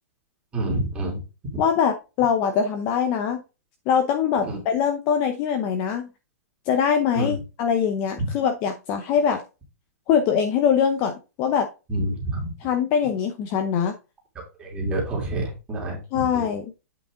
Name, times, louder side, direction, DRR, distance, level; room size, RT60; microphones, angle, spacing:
voice 1, 0.5-1.2 1.5-1.6 4.5-4.6 7.1-7.4 8.2-8.3 11.9-12.5 14.6-16.5, right 1 dB, 10° right, -2 dB, 2.8 m, -27 dB
voice 2, 1.6-3.4 3.9-6.1 6.7-9.4 10.1-11.1 11.4-11.7 12.6-14.0 16.1-16.7, left 7 dB, 25° left, 5 dB, 0.7 m, -22 dB
8.5 x 4.9 x 3.8 m, 0.29 s
hypercardioid pair, 175°, 9 cm